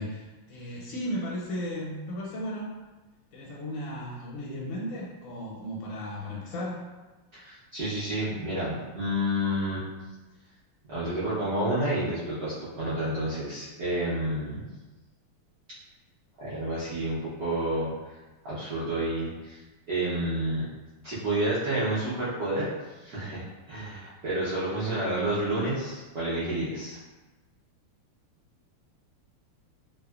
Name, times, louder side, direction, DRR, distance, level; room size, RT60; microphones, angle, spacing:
voice 1, 0.0-2.8 3.3-6.8, equal, 80° left, -4 dB, 1.5 m, -35 dB
voice 2, 7.3-9.9 10.9-14.6 16.4-18.1 18.4-19.6 19.9-20.6 21.0-22.7 23.0-27.0, right 1 dB, 70° right, -12 dB, 0.8 m, -30 dB
3.5 x 2.0 x 2.3 m, 1.2 s
omnidirectional pair, 2.4 m